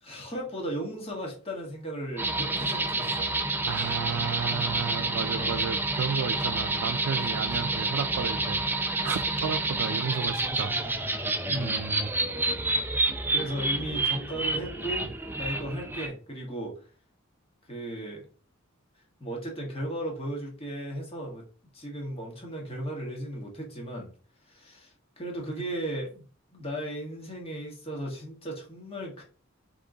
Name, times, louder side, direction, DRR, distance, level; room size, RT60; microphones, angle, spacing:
voice 1, 0.0-3.4 5.3-5.7 11.5-12.0 12.9-13.0 13.3-15.1 15.4-16.7 17.7-18.2 19.2-21.4 21.7-24.1 24.5-26.2 26.5-29.2, right 1 dB, 30° left, 1.7 m, -36 dB
sound 1, 2.2-16.1, right 2 dB, 10° right, 0.4 m, -29 dB
voice 2, 3.6-12.1, right 6 dB, 80° right, 0.4 m, -33 dB
3.7 x 3.5 x 3.9 m
head